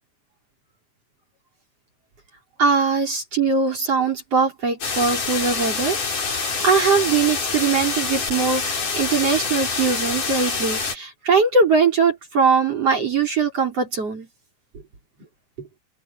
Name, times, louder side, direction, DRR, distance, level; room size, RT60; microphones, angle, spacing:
voice 1, 2.6-14.3, right 5 dB, 35° right, 5.2 m, -21 dB
sound 1, 4.8-11.0, left 4 dB, 50° left, 6.8 m, -26 dB
open air
omnidirectional pair, 4.8 m